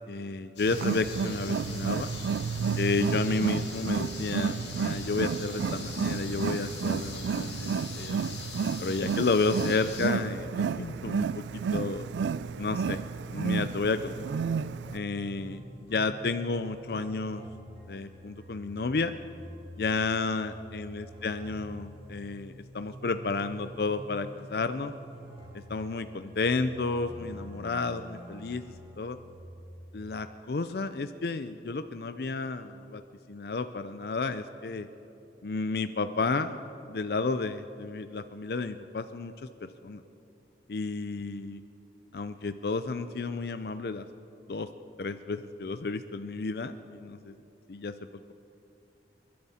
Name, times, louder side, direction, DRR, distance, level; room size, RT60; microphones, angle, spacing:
voice 1, 0.1-2.1 2.8-7.7 8.0-8.4 8.8-12.1 12.6-13.0 13.3-14.3 14.9-17.4 17.9-19.1 19.8-24.9 25.7-28.6 29.0-29.2 29.9-33.0 33.3-34.9 35.4-36.6 36.9-40.0 40.7-41.6 42.1-44.0 44.5-44.7 45.0-47.3 47.7-47.9, left 3 dB, 60° left, 10 dB, 0.5 m, -31 dB
sound 1, 0.6-10.1, left 4 dB, 90° left, 2.5 m, -42 dB
Wild animals, 0.7-15.0, right 6 dB, 85° right, 0.3 m, -31 dB
sound 2, 13.4-29.4, right 1 dB, 30° right, 4.5 m, -47 dB
28.5 x 12.0 x 4.3 m, 2.8 s
head